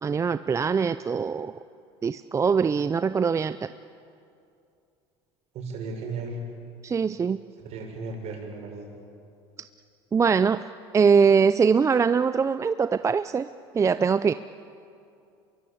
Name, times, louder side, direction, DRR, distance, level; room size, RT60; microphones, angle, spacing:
voice 1, 0.0-1.5 2.0-3.6 6.8-7.4 10.1-10.6 10.9-13.5 13.7-14.3, right 6 dB, 25° right, 12 dB, 0.5 m, -22 dB
voice 2, 5.5-6.4 7.5-8.9, right 3 dB, 55° right, 2 dB, 6.6 m, -35 dB
25.5 x 22.5 x 8.6 m, 2.6 s
supercardioid pair, 100°, 13 cm